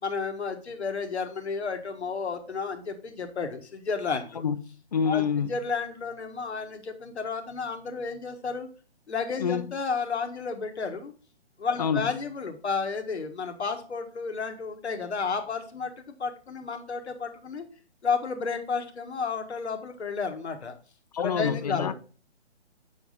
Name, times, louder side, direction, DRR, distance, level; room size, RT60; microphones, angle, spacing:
voice 1, 0.0-4.4 5.0-8.7 9.1-11.1 11.6-17.6 18.0-20.7 21.2-21.9, left 5 dB, 70° left, 1.5 m, -32 dB
voice 2, 4.9-5.5 9.4-9.7 11.8-12.1 21.1-21.9, left 7 dB, 35° left, 0.5 m, -26 dB
7.1 x 4.7 x 4.0 m
figure-of-eight pair, 145°, 34 cm